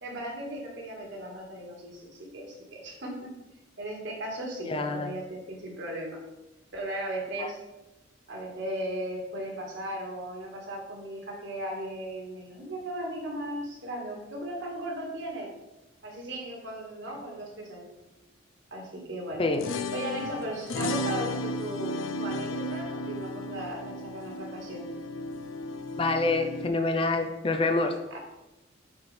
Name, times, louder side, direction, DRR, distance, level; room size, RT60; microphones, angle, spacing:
voice 1, 0.0-3.3 3.8-6.2 6.7-7.6 8.3-15.5 16.0-18.0 18.7-19.4 19.9-24.9 28.1-28.2, right 1 dB, 60° right, -1 dB, 1.7 m, -37 dB
voice 2, 4.7-5.1 7.4-7.5 19.4-19.6 26.0-27.9, left 3 dB, 25° left, 6 dB, 0.5 m, -26 dB
sound 1, 19.3-26.7, left 1 dB, 80° left, 0.5 m, -34 dB
8.5 x 4.2 x 3.3 m, 0.99 s
head